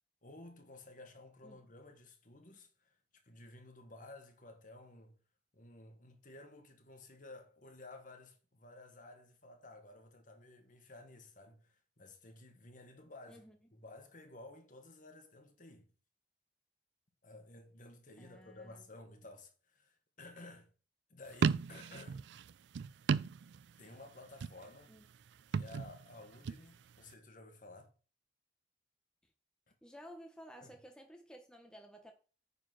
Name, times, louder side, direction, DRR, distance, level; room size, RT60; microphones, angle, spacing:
voice 1, 0.2-5.1 5.5-13.4 13.7-15.9 17.2-20.7 21.1-22.2 23.8-24.9 25.5-27.9 30.6-30.8, left 2 dB, 45° left, 1.7 m, -54 dB
voice 2, 18.2-18.8 24.9-25.0 29.8-32.1, equal, 5° left, 1.0 m, -54 dB
sound 1, 21.3-23.9 24.2-24.8 25.4-26.6, right 5 dB, 65° right, 0.3 m, -35 dB
9.5 x 4.3 x 5.9 m
head